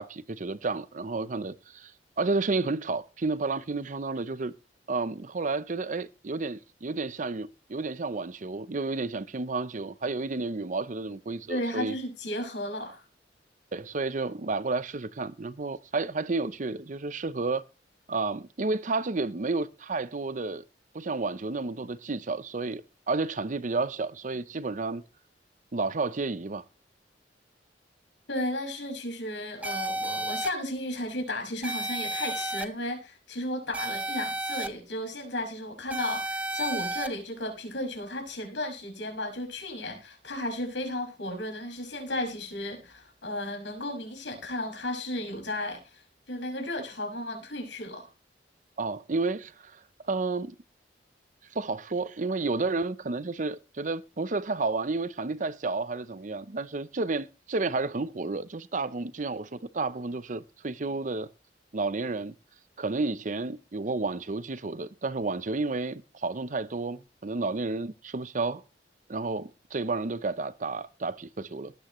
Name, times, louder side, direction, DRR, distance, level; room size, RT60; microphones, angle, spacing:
voice 1, 0.0-1.9 2.2-4.5 4.9-11.9 13.7-17.6 18.1-20.6 20.9-25.0 25.7-26.6 48.8-49.8 50.1-50.6 51.5-61.3 61.7-62.3 62.8-68.6 69.1-71.7, right 3 dB, 45° right, 0.6 m, -31 dB
voice 2, 11.5-13.0 28.3-48.1, left 1 dB, 85° left, 5.9 m, -34 dB
sound 1, 29.6-30.5 31.6-32.6 33.7-34.7 35.9-37.1, right 1 dB, 10° right, 0.8 m, -32 dB
19.5 x 9.0 x 3.1 m
head